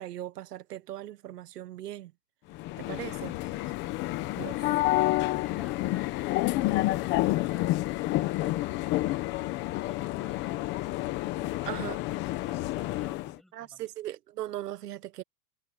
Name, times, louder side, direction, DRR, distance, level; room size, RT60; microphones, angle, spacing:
voice 1, 0.0-2.1 2.8-3.7 4.4-4.6 11.6-12.0 13.5-15.2, right 13 dB, 75° right, 1.5 m, -39 dB
sound 1, 2.5-13.4, left 17 dB, 25° left, 0.9 m, -29 dB
voice 2, 9.9-13.9, equal, ahead, 7.1 m, -56 dB
supercardioid pair, 160°, 48 cm